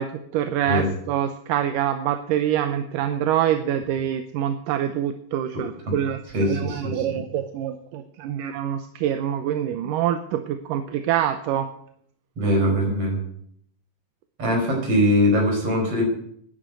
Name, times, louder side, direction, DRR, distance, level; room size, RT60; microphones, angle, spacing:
voice 1, 0.0-11.7, right 10 dB, 75° right, 8 dB, 2.2 m, -25 dB
voice 2, 5.5-5.9 6.3-7.2 12.4-13.2 14.4-16.1, equal, 40° right, 1 dB, 5.4 m, -22 dB
11.5 x 10.0 x 9.1 m, 0.69 s
omnidirectional pair, 4.2 m